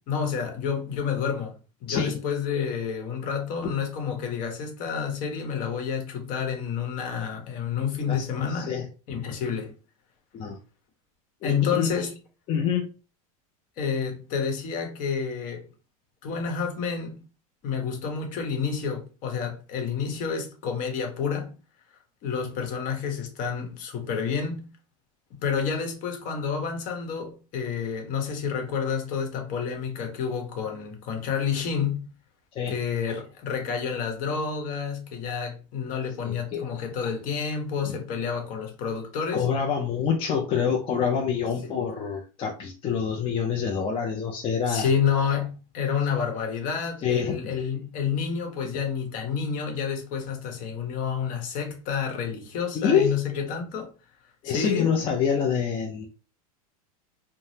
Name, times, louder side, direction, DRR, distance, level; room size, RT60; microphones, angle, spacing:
voice 1, 0.1-1.5 1.8-8.7 9.1-9.7 11.4-12.2 13.8-15.6 16.2-17.2 17.6-21.5 22.2-24.7 25.3-32.1 32.7-39.4 44.7-53.9 54.4-54.9, left 6 dB, 45° left, 1.0 m, -29 dB
voice 2, 1.9-2.2 8.1-8.9 10.3-10.6 11.4-11.9 12.5-12.9 32.5-32.8 36.2-36.7 37.8-37.9 39.3-44.9 47.0-47.5 52.8-53.2 54.4-56.1, left 7 dB, 30° left, 0.4 m, -26 dB
3.3 x 2.1 x 2.7 m
supercardioid pair, 130°, 19 cm